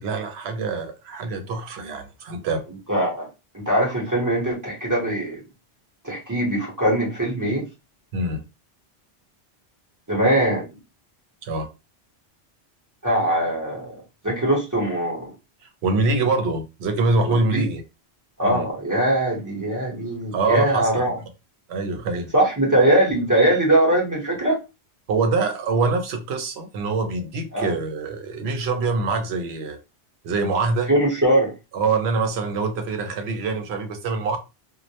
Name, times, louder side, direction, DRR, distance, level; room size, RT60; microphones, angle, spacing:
voice 1, 0.0-2.6 8.1-8.4 11.4-11.7 15.8-17.8 18.4-18.6 20.3-20.9 21.7-22.3 25.1-29.8 30.2-30.9 31.7-34.4, right 3 dB, 75° right, 0.9 m, -24 dB
voice 2, 2.9-3.3 3.5-5.4 6.0-7.6 10.1-10.7 13.0-13.9 14.2-15.3 17.2-17.6 18.4-21.2 22.3-24.6 27.5-27.7 30.9-31.5, right 1 dB, 20° right, 0.7 m, -21 dB
2.2 x 2.0 x 2.7 m
omnidirectional pair, 1.1 m